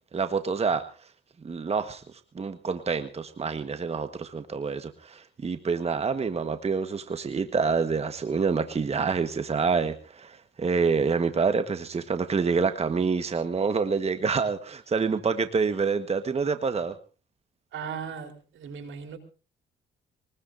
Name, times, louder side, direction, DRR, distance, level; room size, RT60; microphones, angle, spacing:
voice 1, 0.1-0.8 1.4-17.0, right 5 dB, 30° right, 10 dB, 1.3 m, -27 dB
voice 2, 17.7-19.2, right 6 dB, 75° right, 8 dB, 3.8 m, -37 dB
24.0 x 20.0 x 2.6 m, 0.35 s
cardioid pair, 90°, 20 cm